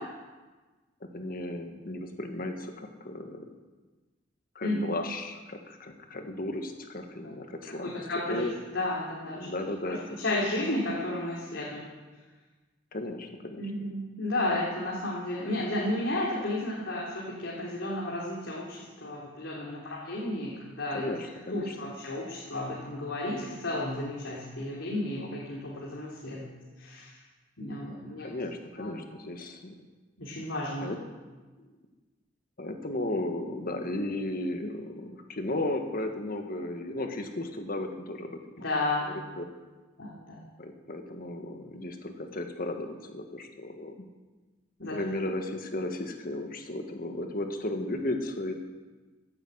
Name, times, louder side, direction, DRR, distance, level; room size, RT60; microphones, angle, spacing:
voice 1, 1.1-3.5 4.5-8.0 8.3-8.5 9.3-10.2 12.9-13.8 20.9-21.7 28.2-29.7 30.8-31.0 31.6-31.7 32.6-38.4 39.0-39.4 40.6-44.1 44.9-48.5, left 1 dB, 50° left, 5 dB, 1.7 m, -35 dB
voice 2, 7.8-9.5 9.8-11.9 13.6-21.1 21.3-26.4 26.8-27.2 27.6-28.3 28.8-28.9 30.2-30.9 38.6-39.1 40.0-40.4 44.8-45.0, left 1 dB, 85° left, -5 dB, 3.1 m, -33 dB
15.5 x 8.8 x 7.9 m, 1.3 s
head